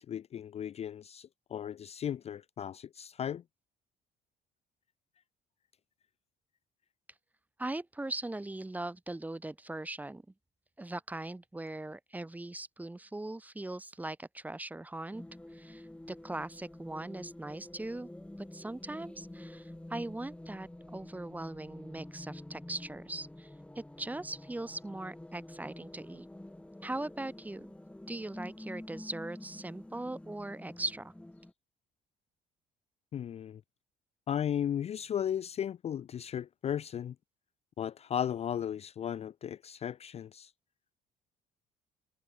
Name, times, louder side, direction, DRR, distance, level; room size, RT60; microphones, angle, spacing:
voice 1, 0.0-3.4 33.1-33.6 34.3-37.1 37.8-40.5, left 9 dB, 40° left, 0.5 m, -35 dB
voice 2, 7.6-10.2 10.8-15.2 15.5-18.1 18.4-23.5 23.7-26.3 26.8-27.7 28.1-31.1, right 2 dB, 10° right, 1.4 m, -40 dB
sound 1, 15.1-31.5, left 1 dB, 5° left, 5.6 m, -48 dB
cardioid pair, 110°, 17 cm